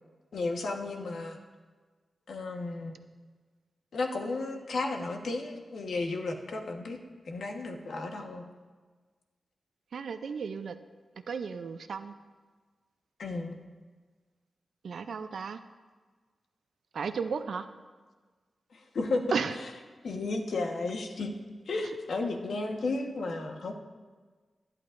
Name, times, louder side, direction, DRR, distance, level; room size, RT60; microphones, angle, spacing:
voice 1, 0.3-1.4 2.3-2.9 3.9-7.0 7.3-8.4 13.2-13.6 18.7-19.4 20.0-21.3 21.7-23.7, left 3 dB, 70° left, 3 dB, 1.3 m, -33 dB
voice 2, 9.9-10.8 11.3-12.1 14.8-15.6 16.9-17.7 19.3-19.6, right 5 dB, 70° right, 9 dB, 0.5 m, -34 dB
20.0 x 11.0 x 2.6 m, 1.4 s
wide cardioid pair, 155°, 0 cm